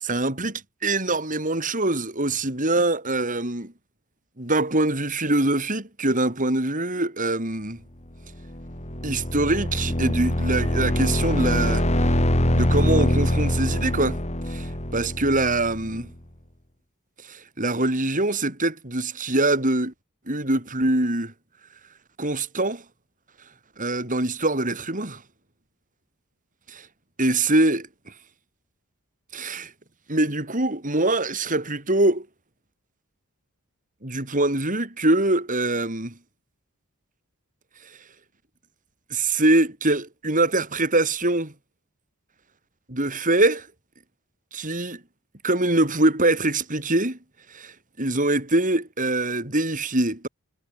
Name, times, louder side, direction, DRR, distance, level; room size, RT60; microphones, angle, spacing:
voice 1, 0.0-3.7 4.4-7.8 9.0-11.8 12.5-14.2 14.5-16.1 17.3-19.9 20.3-21.3 22.2-22.8 23.8-25.2 26.7-26.9 27.2-27.9 29.3-29.7 30.1-32.3 34.0-36.1 39.1-41.5 42.9-43.7 44.5-45.0 45.4-47.2 47.5-50.3, right 2 dB, 35° right, 5.3 m, -23 dB
sound 1, 8.3-16.0, left 1 dB, 30° left, 4.1 m, -24 dB
head